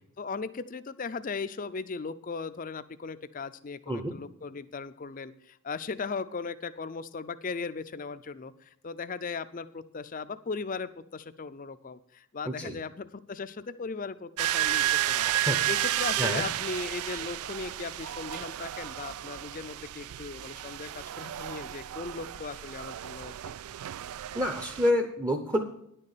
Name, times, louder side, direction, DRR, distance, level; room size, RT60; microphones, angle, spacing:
voice 1, 0.2-15.3 15.6-23.3, left 4 dB, 35° left, 13 dB, 0.5 m, -38 dB
voice 2, 12.4-12.8 15.2-15.6 16.2-16.4 24.3-25.6, left 1 dB, 15° right, 5 dB, 0.7 m, -28 dB
sound 1, 14.4-24.9, right 13 dB, 80° right, 0.3 m, -32 dB
10.5 x 6.7 x 7.2 m, 0.72 s
head